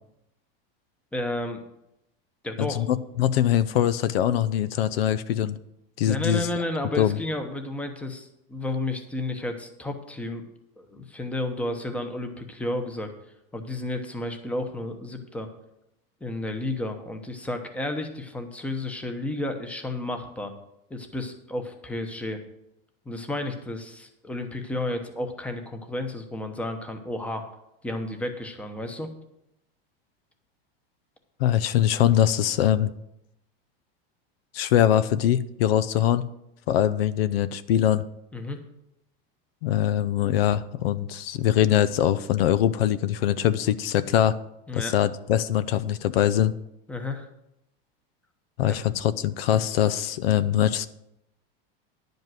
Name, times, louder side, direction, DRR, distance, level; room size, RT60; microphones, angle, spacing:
voice 1, 1.1-1.6 2.4-2.9 6.1-10.4 10.8-13.1 13.5-15.5 16.2-20.5 20.9-22.4 23.1-27.5 27.8-29.1 38.3-38.6 44.7-44.9 46.9-47.3, left 1 dB, 5° left, 6 dB, 0.9 m, -32 dB
voice 2, 2.6-5.6 6.0-6.5 7.0-7.2 31.4-32.9 34.5-36.3 36.7-38.0 39.6-44.4 44.7-46.5 48.6-50.9, left 11 dB, 85° left, 15 dB, 0.7 m, -22 dB
11.0 x 5.3 x 7.6 m, 0.83 s
supercardioid pair, 155°, 29 cm